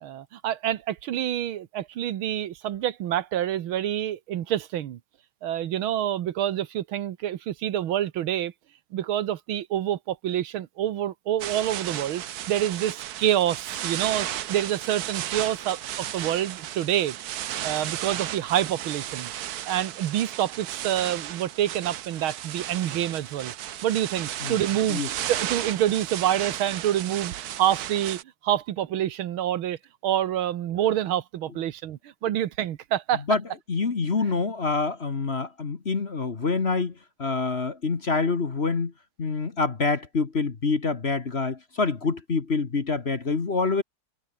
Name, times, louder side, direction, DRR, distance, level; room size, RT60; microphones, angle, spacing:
voice 1, 0.0-5.0 5.4-8.5 8.9-17.2 17.6-19.3 19.7-23.5 23.8-33.2, right 11 dB, 80° right, 1.9 m, -27 dB
sound 1, 11.4-28.2, right 12 dB, 60° right, 1.1 m, -34 dB
voice 2, 33.7-38.9 39.2-43.8, left 4 dB, 35° left, 1.5 m, -26 dB
omnidirectional pair, 2.3 m